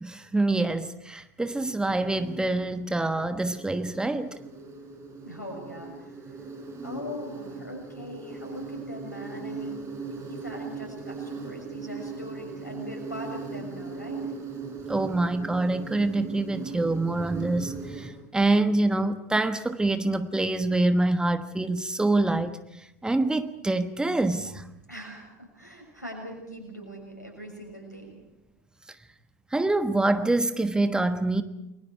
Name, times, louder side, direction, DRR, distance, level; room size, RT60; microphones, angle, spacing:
voice 1, 0.0-4.4 14.9-22.5 23.0-24.6 29.5-31.4, right 2 dB, 10° right, 1.3 m, -25 dB
Insect, 1.4-18.1, right 4 dB, 30° right, 6.4 m, -39 dB
voice 2, 5.2-14.3 24.9-28.2, equal, 85° left, 6.7 m, -41 dB
30.0 x 21.5 x 4.8 m
figure-of-eight pair, 75°, 9 cm